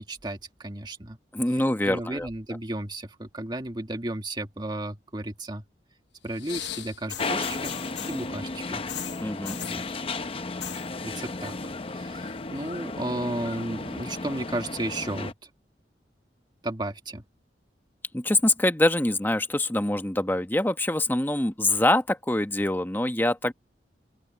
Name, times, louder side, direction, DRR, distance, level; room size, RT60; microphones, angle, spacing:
voice 1, 0.0-1.2 1.8-5.6 6.2-8.8 9.6-9.8 11.0-15.3 16.6-17.2, right 1 dB, 25° right, 1.6 m, -34 dB
voice 2, 1.3-2.3 9.2-9.6 18.1-23.5, left 1 dB, 10° left, 1.0 m, -24 dB
sound 1, 6.3-8.3 8.9-9.9 10.4-10.9 11.1-11.6 12.0-12.8 13.5-13.6, left 10 dB, 80° left, 1.0 m, -38 dB
sound 2, 7.2-15.3, left 3 dB, 30° left, 0.7 m, -34 dB
open air
head